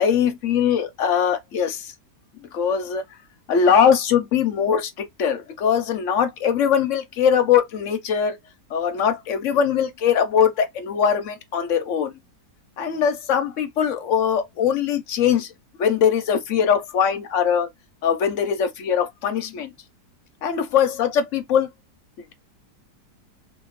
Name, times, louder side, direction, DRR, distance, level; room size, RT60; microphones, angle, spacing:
voice 1, 0.0-1.9 2.4-3.0 3.5-8.4 8.7-12.1 12.8-15.5 15.8-17.7 18.0-19.7 20.4-21.7, left 7 dB, 60° left, 0.8 m, -21 dB
3.5 x 2.4 x 3.0 m
omnidirectional pair, 1.8 m